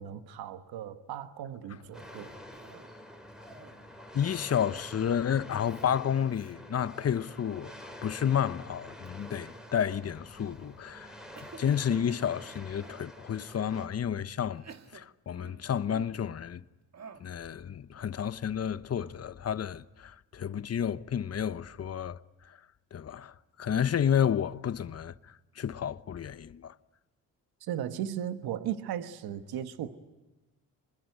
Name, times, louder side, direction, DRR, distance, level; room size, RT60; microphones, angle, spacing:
voice 1, 0.0-2.3 27.6-30.0, right 10 dB, 80° right, 1.4 m, -36 dB
Cough, 1.8-3.0 3.3-4.0 5.0-5.4 5.6-5.9 6.3-6.5 7.1-7.5 9.1-9.8 10.4-10.8 11.3-13.1 13.8-13.9 14.5-16.3 16.9-17.4, right 6 dB, 45° right, 1.8 m, -53 dB
sound 1, 1.9-13.9, equal, ahead, 4.2 m, -47 dB
voice 2, 4.1-14.6 14.9-16.6 17.2-22.6 22.9-26.8, left 8 dB, 40° left, 0.9 m, -31 dB
25.0 x 21.5 x 9.3 m
supercardioid pair, 60°, 37 cm